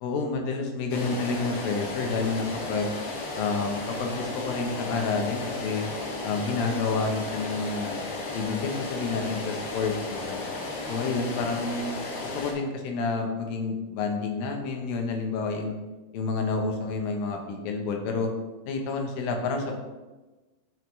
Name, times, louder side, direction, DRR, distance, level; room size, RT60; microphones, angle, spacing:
voice 1, 0.0-2.9 3.3-5.9 6.2-8.0 8.3-10.4 10.9-15.7 16.1-18.3 18.7-19.7, left 4 dB, 85° left, 3 dB, 2.7 m, -29 dB
sound 1, 0.9-12.5, left 2 dB, 65° left, 1.4 m, -34 dB
11.0 x 4.6 x 3.1 m, 1.2 s
omnidirectional pair, 4.1 m